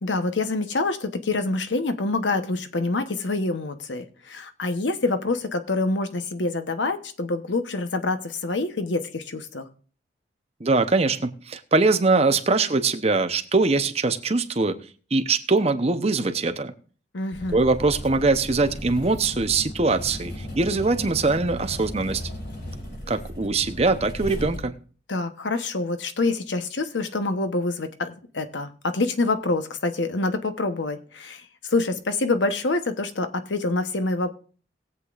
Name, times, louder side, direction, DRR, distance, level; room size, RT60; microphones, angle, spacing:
voice 1, 0.0-9.7 17.1-17.6 25.1-34.3, left 3 dB, 85° left, 9 dB, 1.0 m, -26 dB
voice 2, 10.6-14.8 15.1-16.7 17.5-22.2 23.1-24.7, right 3 dB, 35° right, 9 dB, 0.8 m, -22 dB
sound 1, 17.3-24.6, equal, 70° left, 4.9 m, -36 dB
20.5 x 8.2 x 2.5 m, 0.41 s
head